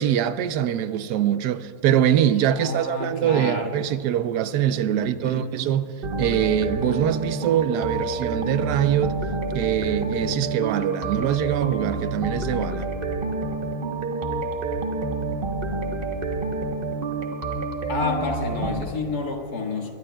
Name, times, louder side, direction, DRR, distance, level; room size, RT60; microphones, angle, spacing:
voice 1, 0.0-9.2 9.5-12.9, right 10 dB, 80° right, 1.2 m, -23 dB
voice 2, 2.5-3.7 5.0-5.5 17.9-19.9, left 3 dB, 70° left, 2.2 m, -29 dB
sound 1, 6.0-18.8, right 3 dB, 40° right, 1.0 m, -28 dB
22.5 x 21.5 x 2.2 m
omnidirectional pair, 1.7 m